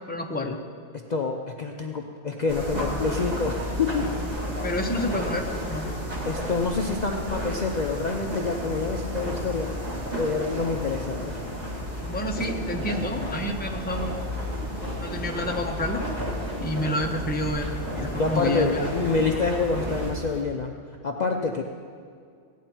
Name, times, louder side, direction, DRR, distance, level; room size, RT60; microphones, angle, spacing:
voice 1, 0.1-0.6 4.6-5.9 12.1-14.5 15.0-18.9, left 1 dB, 10° left, 2 dB, 0.8 m, -29 dB
voice 2, 1.1-4.1 6.3-9.7 10.1-11.4 18.2-20.7 21.0-21.6, left 4 dB, 45° left, 2 dB, 0.7 m, -27 dB
sound 1, 2.5-20.1, equal, 35° right, 2.2 m, -32 dB
sound 2, 13.0-20.4, left 1 dB, 15° right, 1.6 m, -42 dB
16.0 x 9.3 x 4.5 m, 2.2 s
omnidirectional pair, 1.2 m